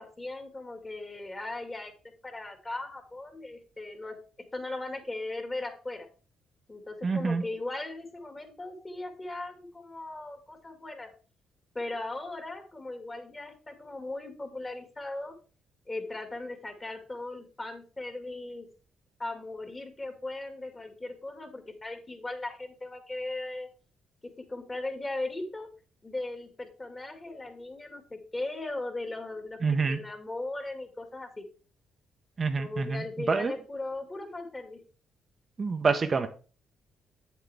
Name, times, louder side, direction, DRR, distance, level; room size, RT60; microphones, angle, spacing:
voice 1, 0.0-1.9 2.2-4.1 4.5-6.1 6.7-11.1 11.7-15.3 15.9-18.7 19.2-23.7 24.5-25.7 26.0-29.6 29.9-31.4 32.6-34.8, left 2 dB, 20° left, 2.1 m, -38 dB
voice 2, 7.0-7.4 29.6-30.0 32.4-33.0 33.3-33.5 35.6-36.3, right 4 dB, 35° right, 0.8 m, -26 dB
8.3 x 7.4 x 3.5 m
cardioid pair, 90°, 0 cm